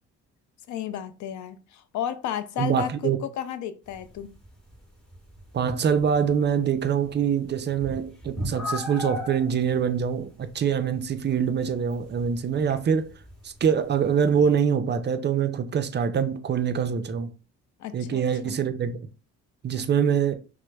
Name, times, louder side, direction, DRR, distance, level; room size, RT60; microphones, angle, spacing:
voice 1, 0.7-4.3 17.8-18.5, left 9 dB, 70° left, 0.5 m, -33 dB
voice 2, 2.6-3.2 5.5-13.1 13.4-17.3 17.9-19.0 19.6-20.4, right 7 dB, 35° right, 0.4 m, -24 dB
sound 1, 3.8-14.6, left 1 dB, ahead, 1.3 m, -40 dB
5.7 x 2.0 x 2.2 m
cardioid pair, 90°, 30 cm